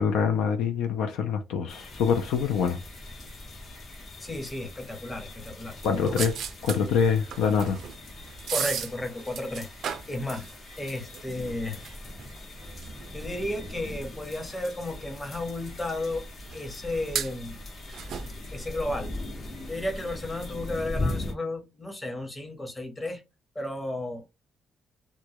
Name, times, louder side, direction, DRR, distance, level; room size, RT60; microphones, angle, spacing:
voice 1, 0.0-2.8 5.8-6.3 6.6-7.8, left 6 dB, 90° left, 0.4 m, -25 dB
sound 1, 1.7-21.3, left 1 dB, 50° left, 0.8 m, -40 dB
voice 2, 4.2-6.2 8.5-10.5 10.8-11.8 13.1-16.2 16.5-17.6 18.5-19.1 19.7-23.2 23.5-24.2, left 1 dB, 20° left, 0.8 m, -33 dB
sound 2, 5.8-14.0 14.3-14.4 15.3-15.5 16.5-16.7 17.1-18.3, right 8 dB, 70° right, 0.4 m, -37 dB
2.2 x 2.0 x 2.8 m
cardioid pair, 90°, 0 cm